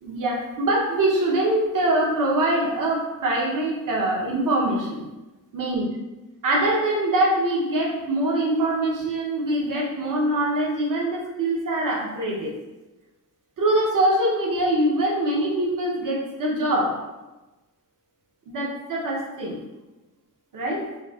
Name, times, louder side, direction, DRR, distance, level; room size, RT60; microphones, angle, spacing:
voice 1, 0.0-5.0 5.5-5.8 6.4-12.5 13.6-16.9 18.5-19.6 20.5-20.8, right 1 dB, 70° right, -3 dB, 0.9 m, -23 dB
4.0 x 2.0 x 2.3 m, 1.1 s
cardioid pair, 90°, 33 cm